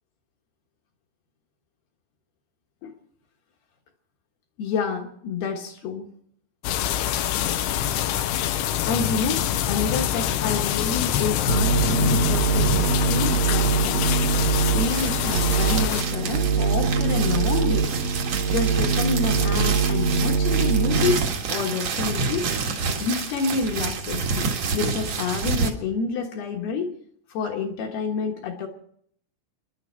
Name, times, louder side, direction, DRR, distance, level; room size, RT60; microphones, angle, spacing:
voice 1, 4.6-6.1 8.9-17.9 18.5-21.2 21.5-22.5 23.0-24.5 24.7-26.9 27.3-28.7, left 4 dB, 65° left, 2 dB, 2.8 m, -28 dB
sound 1, 6.6-16.0, left 11 dB, 90° left, 2.3 m, -25 dB
sound 2, 11.5-21.2, right 5 dB, 80° right, 3.2 m, -23 dB
sound 3, 14.9-25.7, right 5 dB, 60° right, 1.8 m, -28 dB
29.5 x 11.0 x 4.4 m, 0.66 s
omnidirectional pair, 5.8 m